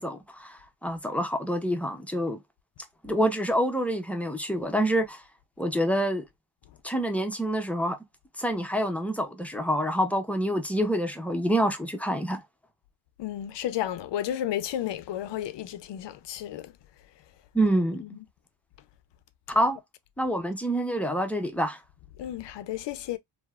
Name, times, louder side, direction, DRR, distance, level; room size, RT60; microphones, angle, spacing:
voice 1, 0.0-2.4 3.0-5.2 5.6-6.2 6.8-8.0 8.4-12.4 17.5-18.0 19.5-19.8 20.2-21.8, equal, 5° left, 0.4 m, -27 dB
voice 2, 13.2-16.7 18.0-18.3 22.2-23.2, left 11 dB, 65° left, 0.5 m, -32 dB
3.0 x 2.0 x 2.2 m
cardioid pair, 90°, 47 cm